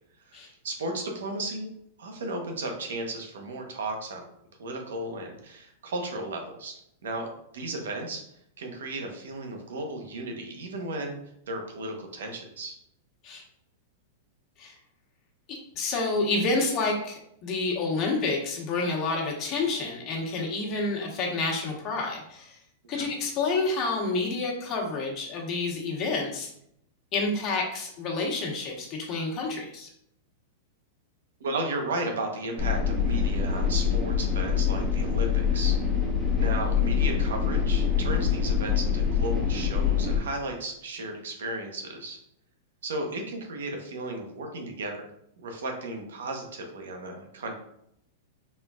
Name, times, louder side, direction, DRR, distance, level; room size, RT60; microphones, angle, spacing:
voice 1, 0.6-1.7 2.0-4.2 4.6-6.7 7.0-7.3 7.5-8.2 8.6-11.2 11.5-12.7 22.9-23.0 31.4-35.8 36.4-42.2 42.8-45.1 45.4-47.5, right 2 dB, 85° right, 3 dB, 0.9 m, -34 dB
voice 2, 15.5-22.6 22.9-26.5 27.1-29.9, left 3 dB, 35° left, -1 dB, 1.1 m, -29 dB
sound 1, 32.6-40.2, left 7 dB, 10° right, 1.3 m, -25 dB
4.4 x 3.6 x 2.4 m, 0.74 s
hypercardioid pair, 135°, 0 cm